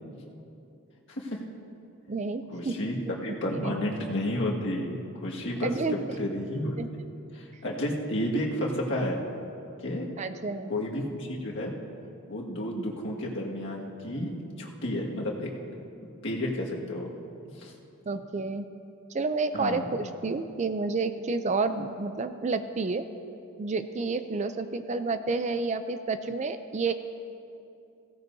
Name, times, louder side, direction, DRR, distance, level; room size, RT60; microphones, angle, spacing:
voice 1, 1.1-1.4 2.5-3.0 3.2-7.0 7.3-9.2 9.8-10.1 10.7-11.7 12.3-15.5 16.2-17.1 17.5-17.7 19.5-20.0, left 1 dB, 55° left, -2 dB, 1.8 m, -31 dB
voice 2, 2.1-2.9 3.5-3.7 5.6-5.9 6.8-6.9 10.2-10.7 18.1-18.7 19.1-23.1 23.6-26.9, right 3 dB, 30° right, 10 dB, 0.4 m, -30 dB
16.5 x 16.5 x 2.7 m, 2.7 s
head